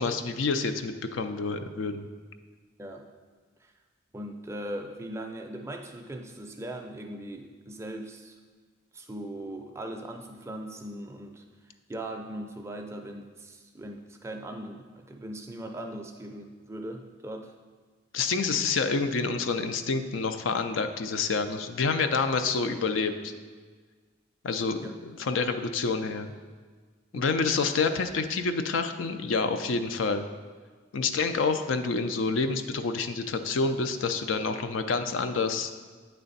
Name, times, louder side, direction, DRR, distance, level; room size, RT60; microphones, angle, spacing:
voice 1, 0.0-2.1 18.1-23.3 24.4-24.9 25.2-26.3 27.1-30.2 30.9-35.7, left 4 dB, 85° left, 8 dB, 0.4 m, -28 dB
voice 2, 4.1-8.4 8.9-11.4 11.9-17.5 24.8-24.9 27.1-27.2, right 1 dB, 15° right, 3 dB, 0.4 m, -39 dB
8.8 x 3.3 x 4.0 m, 1.5 s
head